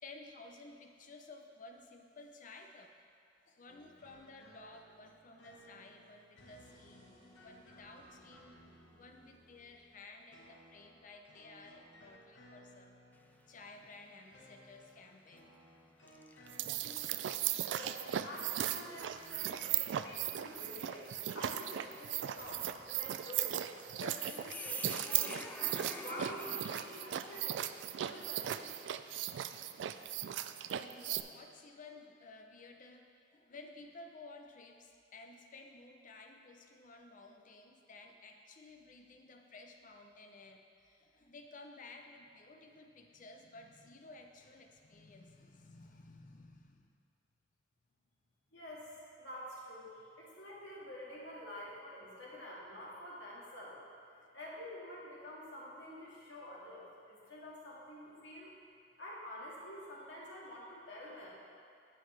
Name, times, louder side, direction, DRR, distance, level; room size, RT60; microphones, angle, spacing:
voice 1, 0.0-3.0 3.5-7.1 7.4-8.6 8.9-13.0 13.5-15.5 29.7-30.5 30.7-47.0 54.2-54.3 57.2-57.3, left 3 dB, 45° left, 4 dB, 0.6 m, -55 dB
sound 1, 3.7-22.9, equal, 90° left, 1.4 m, -60 dB
sound 2, 13.1-13.6 14.1-14.3 15.2-15.5 16.1-28.1, left 2 dB, 10° left, 0.4 m, -51 dB
sound 3, 16.5-31.2, right 11 dB, 80° right, 0.3 m, -37 dB
voice 2, 17.4-18.0 18.2-23.6 23.9-25.4 26.0-27.6 28.0-28.7 48.5-49.9 50.2-53.8 54.3-58.5 59.0-61.3, equal, 75° left, -6 dB, 2.1 m, -48 dB
9.6 x 7.7 x 3.4 m, 2.5 s
head